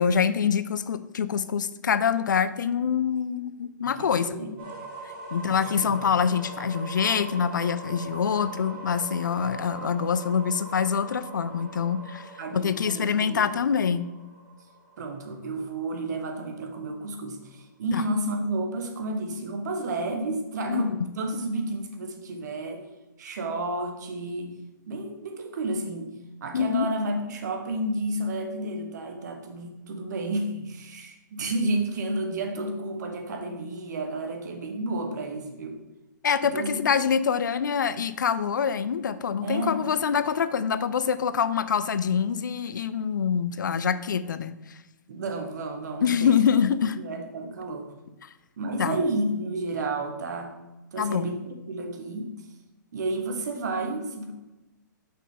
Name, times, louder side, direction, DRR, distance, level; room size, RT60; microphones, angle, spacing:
voice 1, 0.0-4.4 5.3-12.3 12.5-14.1 17.9-18.0 20.7-20.9 26.5-26.9 36.2-44.6 46.0-47.0 48.2-48.3 48.8-49.0 51.0-51.3, left 7 dB, 75° left, 14 dB, 0.5 m, -25 dB
voice 2, 3.8-4.6 5.4-6.0 12.4-13.5 15.0-22.8 23.2-24.5 24.9-26.1 26.4-35.8 36.4-36.8 39.4-39.9 45.1-46.6 46.9-47.9 48.6-50.6 50.9-52.3 52.9-54.3, right 2 dB, 60° right, 4 dB, 1.3 m, -31 dB
sound 1, 4.6-16.4, right 2 dB, 45° right, 1.8 m, -42 dB
6.2 x 5.7 x 3.8 m, 1.0 s
hypercardioid pair, 125°, 10 cm